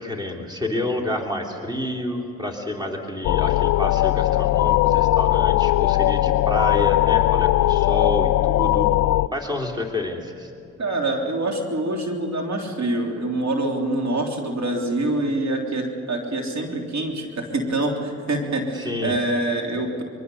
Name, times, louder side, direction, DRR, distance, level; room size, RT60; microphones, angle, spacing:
voice 1, 0.0-8.9 9.3-10.5 18.8-19.1, left 1 dB, 15° right, 2 dB, 3.0 m, -29 dB
sound 1, 3.2-9.3, left 16 dB, 65° left, 0.4 m, -19 dB
voice 2, 10.8-20.0, right 2 dB, 65° right, 2 dB, 3.4 m, -25 dB
24.0 x 23.0 x 7.0 m, 2.8 s
cardioid pair, 90°, 30 cm